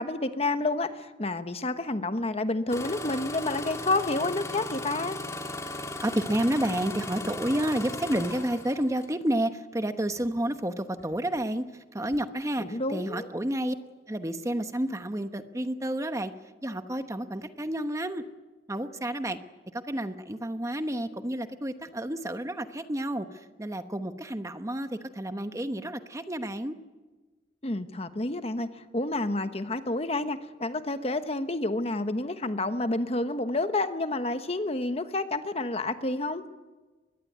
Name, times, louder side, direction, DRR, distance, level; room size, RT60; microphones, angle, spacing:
voice 1, 0.0-5.2 12.6-13.3 27.6-36.4, left 2 dB, 35° left, 9 dB, 1.2 m, -29 dB
Engine starting, 2.7-9.1 10.1-10.4 11.0-11.4 12.0-12.2, left 2 dB, 20° left, 2.4 m, -37 dB
voice 2, 6.0-11.6 11.9-13.7 14.1-16.3 16.6-18.2 18.7-19.4 19.7-26.7, right 1 dB, 20° right, 9 dB, 1.0 m, -30 dB
22.5 x 21.0 x 9.5 m, 1.2 s
head